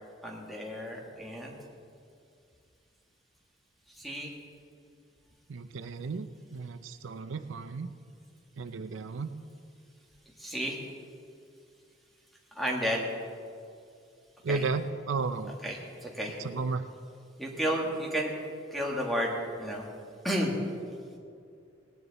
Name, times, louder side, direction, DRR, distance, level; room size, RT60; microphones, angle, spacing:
voice 1, 0.2-1.6 4.0-4.3 10.4-10.8 12.6-13.0 14.5-14.6 15.6-16.4 17.4-18.3 18.7-19.9 20.2-20.6, equal, ahead, -1 dB, 1.6 m, -32 dB
voice 2, 5.5-7.9 8.6-9.3 14.4-15.5 16.4-16.8, right 4 dB, 75° right, 10 dB, 0.5 m, -33 dB
18.5 x 10.0 x 4.1 m, 2.4 s
head